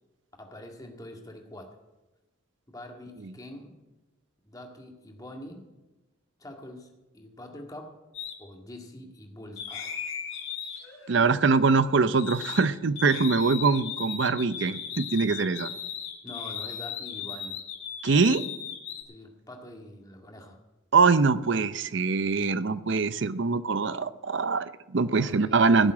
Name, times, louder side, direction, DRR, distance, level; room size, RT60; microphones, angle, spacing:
voice 1, 0.4-1.7 2.7-3.7 4.5-5.6 6.4-8.0 8.4-10.0 16.2-17.6 19.1-20.6 25.1-25.9, left 1 dB, 15° left, 2 dB, 1.9 m, -45 dB
sound 1, 8.1-8.4 9.6-12.7 13.0-19.0, left 8 dB, 70° left, 3.7 m, -37 dB
voice 2, 11.1-15.7 18.0-18.4 20.9-25.9, right 4 dB, 60° right, 15 dB, 0.6 m, -23 dB
16.0 x 7.3 x 8.6 m, 1.1 s
head